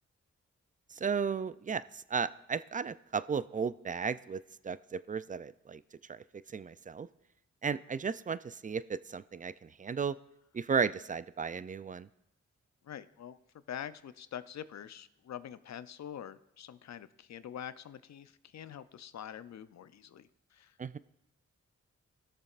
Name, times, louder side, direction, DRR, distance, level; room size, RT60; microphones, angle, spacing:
voice 1, 0.9-4.4 4.6-5.8 6.1-6.2 6.5-7.1 7.6-10.1 10.5-12.1 20.8-21.0, right 6 dB, 30° right, 16 dB, 0.3 m, -34 dB
voice 2, 12.8-13.4 13.7-21.0, left 9 dB, 65° left, 14 dB, 0.5 m, -45 dB
17.5 x 6.6 x 2.4 m, 0.85 s
cardioid pair, 45°, 30 cm